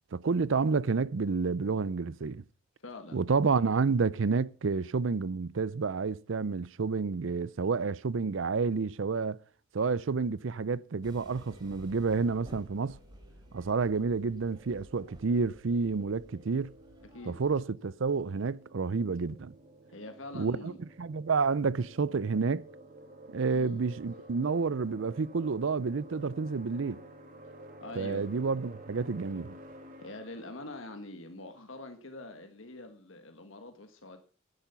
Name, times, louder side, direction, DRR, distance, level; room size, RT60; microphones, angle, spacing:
voice 1, 0.1-2.4 3.1-9.4 9.7-13.0 13.5-16.7 17.3-19.5 20.3-20.7 21.0-22.6 23.3-27.0 28.0-29.5, right 4 dB, 70° right, 0.5 m, -29 dB
voice 2, 2.8-3.2 17.0-17.4 19.9-20.8 23.5-23.7 27.8-28.3 30.0-34.2, left 2 dB, 70° left, 1.6 m, -44 dB
sound 1, 11.0-17.6, right 1 dB, 20° right, 3.3 m, -54 dB
sound 2, 14.5-31.0, right 1 dB, 40° right, 2.5 m, -52 dB
10.5 x 10.5 x 5.7 m
head